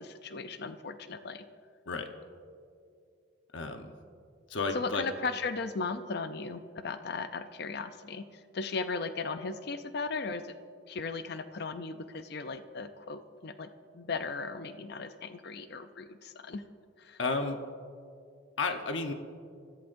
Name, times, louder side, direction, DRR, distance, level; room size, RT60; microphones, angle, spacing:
voice 1, 0.0-1.4 4.7-10.5 10.9-13.7 13.9-16.6 17.0-17.2, left 4 dB, 55° left, 10 dB, 0.5 m, -37 dB
voice 2, 3.5-3.9 4.5-5.0 17.2-17.6 18.6-19.1, left 3 dB, 75° left, 5 dB, 1.0 m, -32 dB
24.5 x 15.0 x 2.6 m, 2.4 s
head